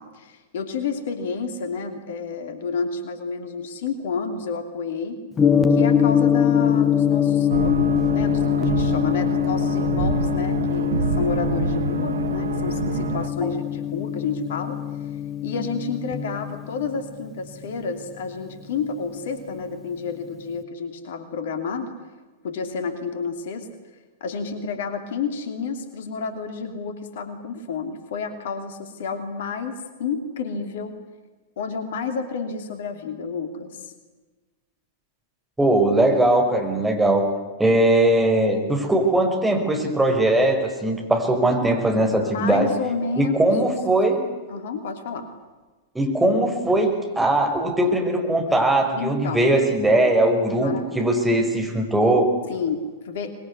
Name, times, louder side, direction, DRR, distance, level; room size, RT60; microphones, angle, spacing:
voice 1, 0.0-5.2 5.7-14.8 15.4-21.9 22.4-23.7 24.2-31.0 31.6-33.9 42.2-43.6 44.5-45.3 49.0-49.5 50.6-51.1 52.5-53.3, left 5 dB, 55° left, 9 dB, 2.8 m, -30 dB
Gong, 5.4-19.5, left 8 dB, 15° left, 1.6 m, -23 dB
sound 1, 7.5-13.3, right 5 dB, 65° right, 1.5 m, -27 dB
voice 2, 35.6-37.2 37.6-42.7 43.2-44.2 46.0-52.3, right 1 dB, 5° right, 2 dB, 5.3 m, -20 dB
25.0 x 22.0 x 9.8 m, 1.3 s
figure-of-eight pair, 100°, 0 cm